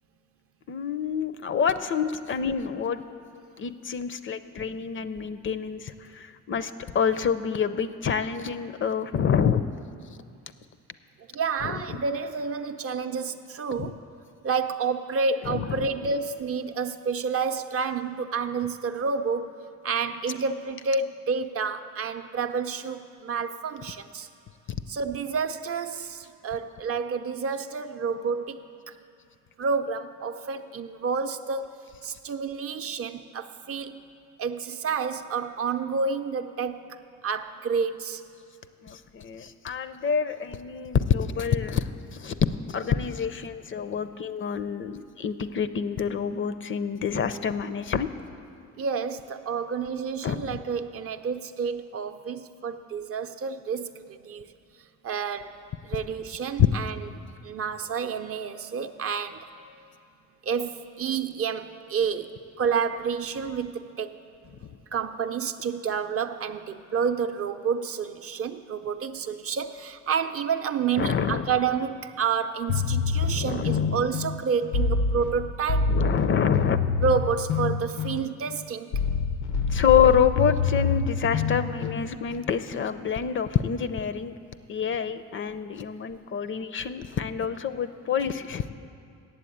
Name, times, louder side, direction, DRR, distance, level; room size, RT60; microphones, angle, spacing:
voice 1, 0.7-3.0 3.6-9.6 11.6-12.0 13.8-13.9 15.5-15.9 38.8-48.1 50.2-50.6 71.0-71.5 73.2-74.0 75.9-76.8 79.7-84.3 84.7-88.6, left 7 dB, 40° left, 12 dB, 0.4 m, -27 dB
voice 2, 11.3-14.0 14.4-19.5 19.8-24.3 24.9-28.6 29.6-31.7 32.0-34.0 34.4-38.2 48.8-54.5 55.0-55.6 55.8-57.0 57.4-59.9 60.4-64.1 64.9-76.0 77.0-78.9, right 5 dB, 50° right, 9 dB, 0.5 m, -29 dB
sound 1, 72.7-82.5, left 5 dB, 85° left, 0.6 m, -27 dB
8.4 x 7.5 x 8.5 m, 2.4 s
cardioid pair, 90°, 30 cm